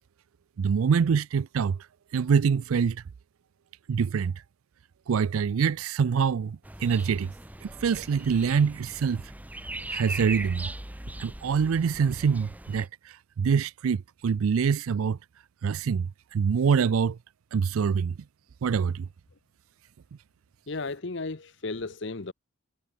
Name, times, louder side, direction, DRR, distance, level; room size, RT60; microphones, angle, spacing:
voice 1, 0.6-1.8 2.1-3.0 3.9-4.3 5.1-7.3 7.6-9.2 9.9-10.7 11.2-15.2 15.6-17.2 17.5-18.1 18.6-19.1, right 6 dB, 90° right, 0.4 m, -25 dB
sound 1, 6.6-12.9, right 2 dB, 5° right, 0.8 m, -39 dB
voice 2, 20.7-22.3, left 3 dB, 60° left, 0.9 m, -34 dB
head